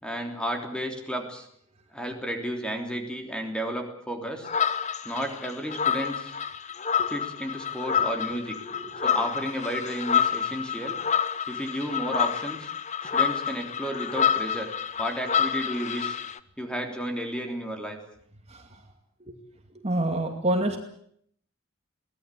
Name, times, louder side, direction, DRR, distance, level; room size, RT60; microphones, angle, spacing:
voice 1, 0.0-1.5 1.9-4.5 5.0-6.3 7.1-8.6 9.0-11.0 11.5-12.7 13.0-14.7 15.0-16.2 16.6-18.0, equal, 5° left, 4 dB, 3.3 m, -32 dB
sound 1, 4.4-16.4, left 8 dB, 35° left, 0.8 m, -28 dB
voice 2, 8.6-9.1 13.0-13.1 18.5-18.8 19.3-19.4 19.8-20.8, right 1 dB, 30° right, 5 dB, 2.3 m, -28 dB
23.5 x 18.5 x 8.4 m, 0.66 s
head